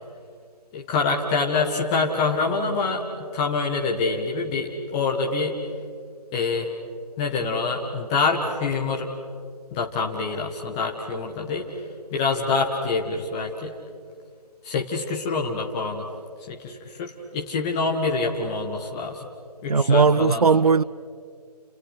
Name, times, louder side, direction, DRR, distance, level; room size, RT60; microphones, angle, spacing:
voice 1, 0.7-5.6 6.3-6.7 7.2-9.1 9.7-11.6 12.1-13.8 14.6-16.0 16.5-19.3 19.6-20.4, left 4 dB, 5° left, 0.7 m, -26 dB
voice 2, 19.7-20.8, right 5 dB, 65° right, 0.7 m, -18 dB
30.0 x 28.0 x 6.1 m
figure-of-eight pair, 160°, 21 cm